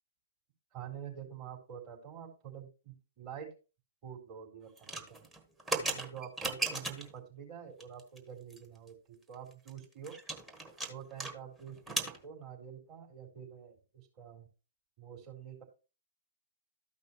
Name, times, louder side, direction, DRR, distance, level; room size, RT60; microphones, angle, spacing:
voice 1, 0.7-3.5 4.0-5.2 5.7-10.2 10.9-14.5 15.0-15.6, right 8 dB, 35° right, -1 dB, 4.1 m, -47 dB
sound 1, 4.8-7.2 7.8-8.2 8.5-8.6 8.9-9.0 9.3-11.3 11.6-12.2, right 2 dB, 10° right, 1.4 m, -36 dB
13.0 x 5.4 x 3.1 m, 0.32 s
figure-of-eight pair, 120°, 0 cm